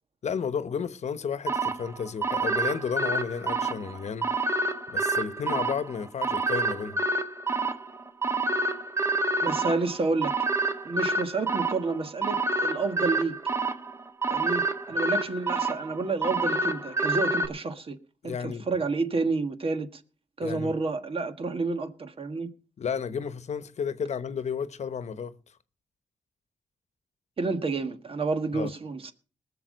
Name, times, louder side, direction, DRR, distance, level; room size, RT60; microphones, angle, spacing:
voice 1, 0.2-4.3 4.9-7.0 18.2-18.7 20.4-20.7 22.8-25.4 28.5-28.7, left 6 dB, 65° left, 1.0 m, -32 dB
sound 1, 1.5-17.5, right 3 dB, 20° right, 1.6 m, -28 dB
voice 2, 9.4-10.3 10.8-13.4 14.3-18.0 18.2-20.0 20.4-22.5 27.4-29.1, right 3 dB, 45° right, 1.6 m, -29 dB
20.0 x 7.2 x 5.2 m
cardioid pair, 75°, 13 cm